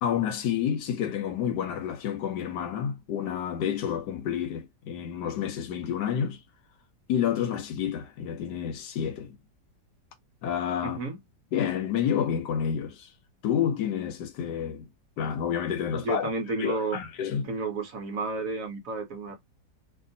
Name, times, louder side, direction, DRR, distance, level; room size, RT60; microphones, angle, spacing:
voice 1, 0.0-6.4 7.1-9.4 10.4-11.0 11.5-13.1 13.4-14.9 15.2-16.3 16.6-17.5, left 9 dB, 75° left, 1.2 m, -29 dB
voice 2, 10.8-11.2 15.9-17.0 17.4-19.4, right 3 dB, 55° right, 1.2 m, -31 dB
2.9 x 2.7 x 2.6 m
omnidirectional pair, 1.9 m